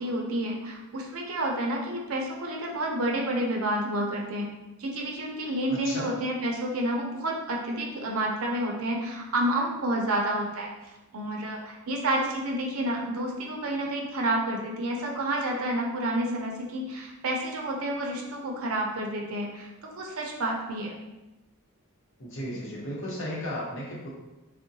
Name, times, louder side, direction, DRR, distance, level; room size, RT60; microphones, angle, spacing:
voice 1, 0.0-4.5 4.8-10.7 11.1-20.9, right 1 dB, 70° right, 0 dB, 0.5 m, -29 dB
voice 2, 5.7-6.1 22.2-24.1, equal, 60° left, -5 dB, 0.9 m, -34 dB
3.6 x 2.1 x 2.7 m, 1.0 s
head